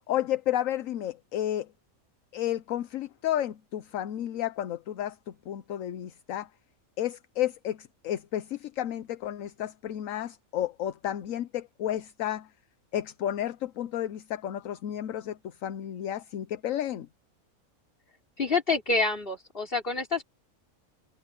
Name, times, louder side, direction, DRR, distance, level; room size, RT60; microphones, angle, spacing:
voice 1, 0.1-1.7 2.3-5.2 5.5-6.5 7.0-12.5 12.9-17.1, left 11 dB, 70° left, 1.1 m, -32 dB
voice 2, 18.4-20.2, left 3 dB, 40° left, 4.1 m, -27 dB
omnidirectional pair, 1.5 m